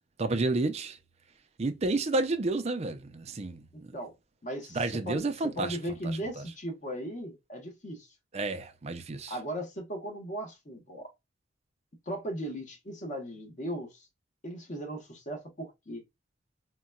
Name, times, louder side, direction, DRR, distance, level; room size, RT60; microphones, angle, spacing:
voice 1, 0.2-1.0 1.6-3.9 4.7-5.8 6.4-6.5 8.3-9.4, right 2 dB, 35° right, 0.5 m, -30 dB
voice 2, 3.7-4.1 4.4-8.1 9.3-11.1 12.1-14.1 14.4-16.0, equal, 40° left, 1.0 m, -37 dB
3.8 x 2.2 x 2.2 m
head